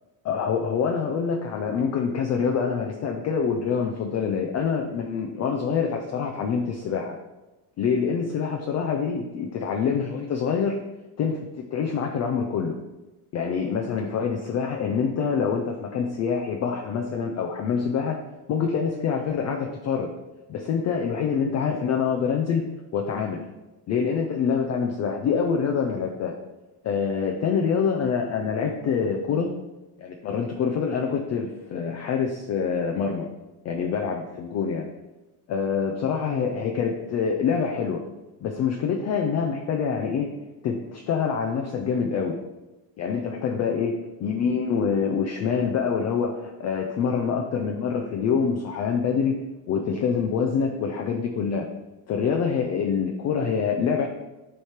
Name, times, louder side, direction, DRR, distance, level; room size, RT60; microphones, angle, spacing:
voice 1, 0.2-7.1 7.8-10.8 11.2-12.8 13.3-18.2 18.5-20.1 20.5-22.6 22.9-23.4 23.9-26.3 26.8-29.5 30.0-33.2 33.6-34.9 35.5-38.0 38.4-40.3 40.6-42.4 43.0-49.4 49.7-51.7 52.1-54.1, left 6 dB, 35° left, 2 dB, 0.4 m, -26 dB
9.6 x 3.3 x 4.3 m, 1.1 s
cardioid pair, 165°, 49 cm